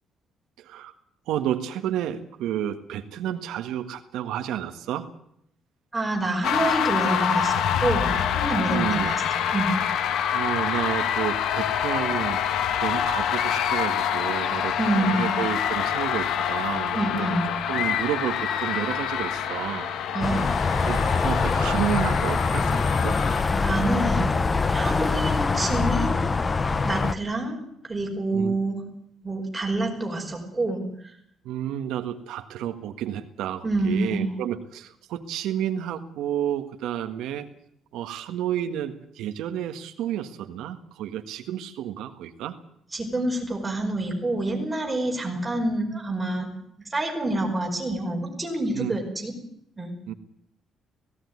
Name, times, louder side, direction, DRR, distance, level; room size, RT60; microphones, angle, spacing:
voice 1, 0.6-0.9 1.3-5.1 8.7-9.1 10.3-12.4 12.8-17.3 17.7-20.0 20.8-23.2 28.3-28.5 31.4-37.5 37.9-42.6 48.7-49.0 50.1-50.2, right 11 dB, 85° right, 7 dB, 1.6 m, -31 dB
voice 2, 5.9-8.1 8.4-9.7 14.8-15.3 16.9-17.5 20.1-20.4 23.6-24.3 24.7-26.3 26.8-27.6 27.9-28.8 29.2-30.9 33.6-34.3 42.9-46.5 46.8-49.3 49.8-49.9, right 2 dB, 10° right, -1 dB, 5.3 m, -27 dB
sound 1, 6.4-23.4, left 9 dB, 65° left, 1.4 m, -26 dB
sound 2, 20.2-27.1, left 4 dB, 20° left, 0.7 m, -24 dB
17.0 x 17.0 x 9.6 m, 0.73 s
cardioid pair, 170°, 0 cm